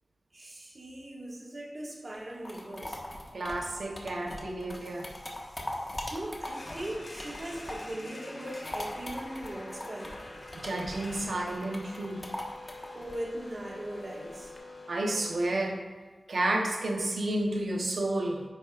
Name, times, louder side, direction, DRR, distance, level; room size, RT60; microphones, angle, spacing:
voice 1, 0.3-3.0 6.1-10.2 12.9-14.5, right 1 dB, 45° right, -3 dB, 1.7 m, -39 dB
sound 1, 2.1-8.0 8.3-14.6, left 1 dB, 30° left, 1.3 m, -40 dB
voice 2, 3.3-5.1 10.5-12.3 14.9-15.8 16.3-18.4, right 1 dB, 80° right, 1 dB, 1.0 m, -31 dB
sound 2, 4.8-15.4, left 2 dB, 65° left, 2.0 m, -47 dB
10.0 x 8.3 x 2.5 m, 1.4 s
wide cardioid pair, 80°, 0 cm